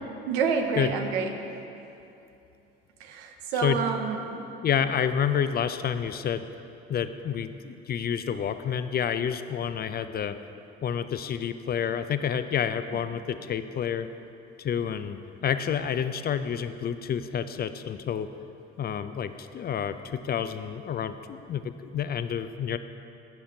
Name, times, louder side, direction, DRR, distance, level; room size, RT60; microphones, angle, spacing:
voice 1, 0.3-1.4 3.0-4.5 12.9-13.0, right 5 dB, 80° right, 5 dB, 0.7 m, -28 dB
voice 2, 4.6-6.4 6.9-10.4 10.8-14.1 14.6-18.3 18.8-22.8, left 8 dB, 35° left, 11 dB, 0.4 m, -29 dB
13.0 x 5.7 x 2.7 m, 2.8 s
hypercardioid pair, 55°, 29 cm